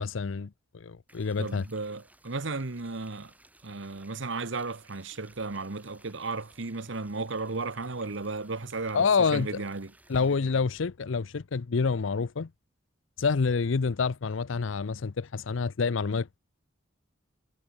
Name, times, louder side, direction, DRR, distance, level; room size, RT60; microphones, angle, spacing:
voice 1, 0.0-1.6 8.9-9.6 10.1-12.5 13.2-16.3, left 5 dB, 70° left, 0.6 m, -27 dB
sound 1, 1.1-10.4, right 1 dB, 10° right, 6.3 m, -59 dB
voice 2, 1.4-3.3 3.6-9.9, right 3 dB, 65° right, 1.2 m, -34 dB
head